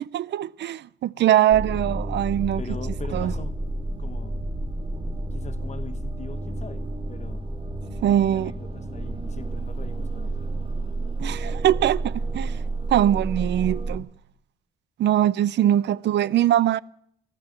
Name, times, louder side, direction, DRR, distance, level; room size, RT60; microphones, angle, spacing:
voice 1, 0.1-2.6 3.1-3.3 8.0-8.5 11.2-12.6 12.9-14.1 15.0-16.8, right 12 dB, 65° right, 0.5 m, -22 dB
sound 1, 1.5-14.0, right 2 dB, 25° right, 2.6 m, -30 dB
voice 2, 2.6-3.5 4.0-4.4 5.3-7.5 8.0-10.5, left 4 dB, 35° left, 1.5 m, -41 dB
15.0 x 11.5 x 7.4 m
cardioid pair, 90°, 20 cm